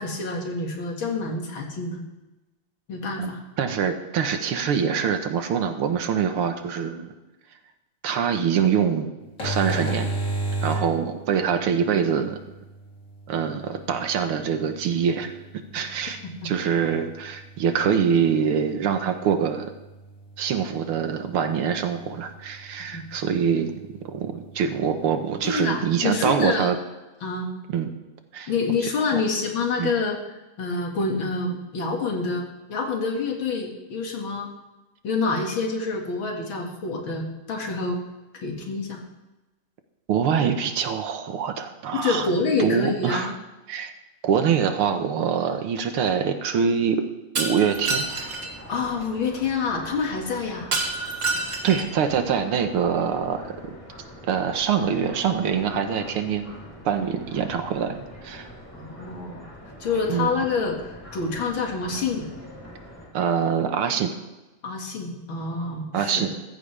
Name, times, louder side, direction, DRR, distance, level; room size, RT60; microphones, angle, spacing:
voice 1, 0.0-2.0 2.9-3.4 22.9-23.0 25.4-26.7 27.2-27.5 28.5-30.2 30.6-34.5 35.0-38.0 38.4-39.0 41.9-43.3 48.7-50.7 51.0-51.2 58.7-59.4 59.8-62.3 64.6-66.3, left 4 dB, 65° left, 1 dB, 2.7 m, -27 dB
voice 2, 3.2-7.1 8.0-9.1 9.4-10.1 10.6-12.4 13.3-19.7 20.4-23.7 24.0-26.8 27.7-27.9 28.3-28.5 29.1-29.2 29.8-29.9 40.1-43.4 43.7-43.9 44.2-47.0 47.3-48.1 51.6-53.6 54.3-56.5 56.9-58.5 60.1-60.3 63.1-64.1 65.9-66.3, right 7 dB, 85° right, 7 dB, 2.0 m, -24 dB
sound 1, 9.2-26.5, right 2 dB, 35° left, 3.5 m, -37 dB
Shatter, 47.4-48.5 50.7-52.0, right 3 dB, 40° right, 1.7 m, -27 dB
sound 2, 47.7-63.1, equal, 5° left, 3.0 m, -44 dB
15.0 x 14.0 x 3.4 m, 1.1 s
omnidirectional pair, 2.4 m